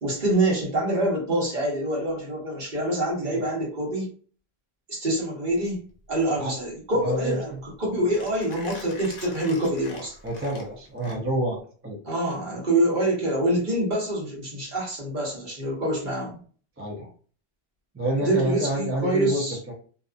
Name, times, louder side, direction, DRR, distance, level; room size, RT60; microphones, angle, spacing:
voice 1, 0.0-4.1 4.9-10.1 12.0-16.4 18.2-19.6, right 1 dB, 50° right, -3 dB, 1.1 m, -26 dB
Mechanisms, 5.5-11.6, left 4 dB, 85° left, 0.9 m, -45 dB
voice 2, 7.0-7.6 10.2-12.0 16.8-17.1 17.9-19.7, right 1 dB, 20° right, -1 dB, 0.4 m, -28 dB
2.6 x 2.3 x 2.4 m, 0.43 s
omnidirectional pair, 1.1 m